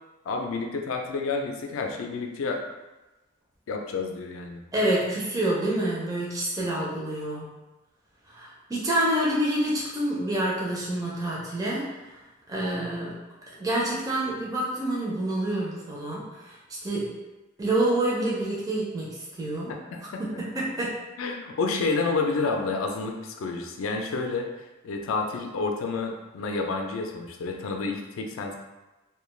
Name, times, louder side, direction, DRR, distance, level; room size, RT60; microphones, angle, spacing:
voice 1, 0.3-2.6 3.7-4.6 19.7-20.4 21.2-24.5 24.8-28.6, left 4 dB, 80° left, 3 dB, 0.4 m, -29 dB
voice 2, 4.7-7.5 8.3-11.9 12.5-13.1 13.5-16.6 16.8-17.1 17.6-19.7 20.2-21.0, right 1 dB, 15° right, -5 dB, 0.4 m, -27 dB
2.3 x 2.2 x 3.1 m, 1.1 s
head